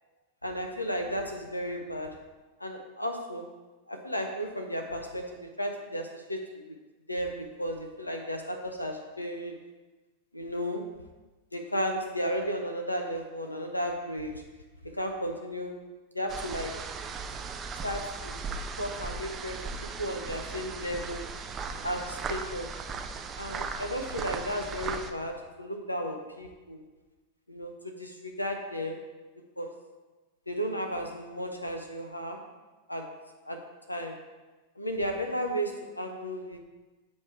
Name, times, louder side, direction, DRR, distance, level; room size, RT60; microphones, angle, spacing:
voice 1, 0.4-2.2 2.6-3.5 3.9-6.8 7.1-9.6 10.3-10.9 11.5-14.4 14.8-15.8 16.1-16.8 17.8-18.4 18.8-19.7 20.0-21.3 21.8-22.8 23.4-26.8 27.5-29.0 29.6-29.7 30.5-32.4 32.9-33.1 33.4-33.6 33.9-34.2 34.8-36.6, equal, 85° left, 3 dB, 0.5 m, -34 dB
sound 1, 16.3-25.1, right 4 dB, 25° right, 0.4 m, -37 dB
7.4 x 3.2 x 4.5 m, 1.2 s
figure-of-eight pair, 90°, 0 cm